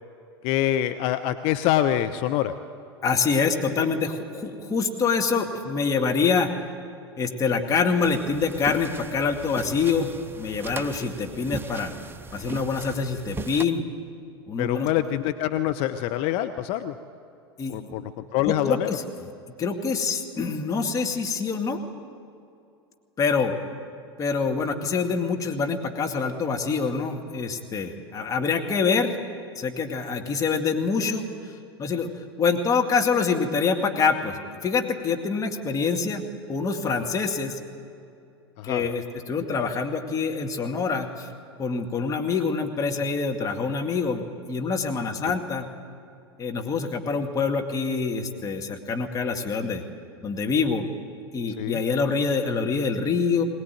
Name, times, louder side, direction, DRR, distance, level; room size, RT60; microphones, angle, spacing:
voice 1, 0.4-2.5 14.6-16.9 17.7-18.0 18.3-18.9 38.6-38.9 45.2-45.3 51.6-51.8, left 12 dB, 45° left, 8 dB, 0.9 m, -25 dB
voice 2, 3.0-6.5 7.2-10.1 10.4-11.9 12.3-13.8 14.5-14.9 17.6-17.9 18.4-19.3 19.6-21.8 23.2-23.5 24.2-29.2 29.6-31.5 31.8-32.1 32.4-37.6 38.6-41.3 41.6-45.7 46.4-49.8 50.2-50.9 51.3-53.4, left 5 dB, 25° left, 2 dB, 2.2 m, -25 dB
sound 1, 8.0-13.6, right 4 dB, 15° right, 0.7 m, -39 dB
22.0 x 18.5 x 9.4 m, 2.6 s
figure-of-eight pair, 85°, 13 cm